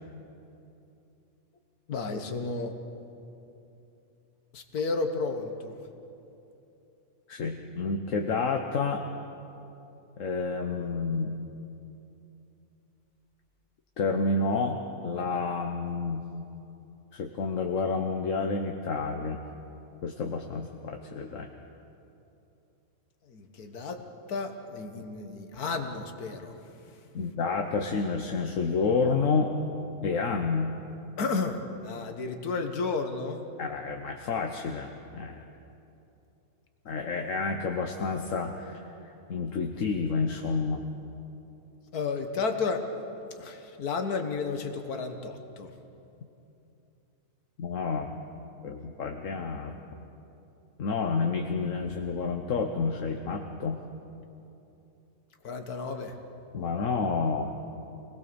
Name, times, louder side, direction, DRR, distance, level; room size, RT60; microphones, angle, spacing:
voice 1, 1.9-2.8 4.5-5.8 23.2-26.5 31.2-33.4 41.9-42.9 43.3-45.7 55.4-56.2, left 4 dB, 75° left, 6 dB, 1.9 m, -32 dB
voice 2, 7.3-9.0 10.2-11.3 14.0-16.2 17.1-19.4 20.0-21.5 27.1-29.5 30.0-30.7 33.6-35.4 36.8-38.8 39.3-40.8 47.6-48.2 48.6-49.7 50.8-53.8 56.5-57.5, left 4 dB, 60° left, 3 dB, 1.4 m, -29 dB
26.0 x 19.5 x 7.0 m, 2.8 s
omnidirectional pair, 1.6 m